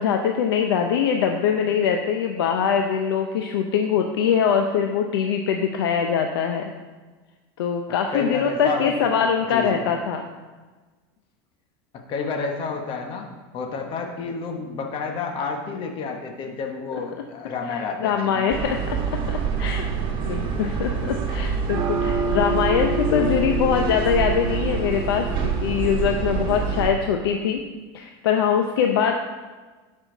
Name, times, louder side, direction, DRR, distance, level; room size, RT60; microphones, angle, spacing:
voice 1, 0.0-6.7 7.6-10.2 17.7-19.0 19.3-19.9 20.3-27.6 27.9-29.2, left 7 dB, 90° left, 4 dB, 0.7 m, -23 dB
voice 2, 8.1-9.8 11.9-13.3 13.5-18.5 22.4-22.6 23.1-23.4, left 4 dB, 45° left, 3 dB, 1.4 m, -30 dB
sound 1, 18.5-26.9, right 5 dB, 40° right, 1.7 m, -25 dB
12.0 x 5.6 x 4.0 m, 1.3 s
supercardioid pair, 120°, 13 cm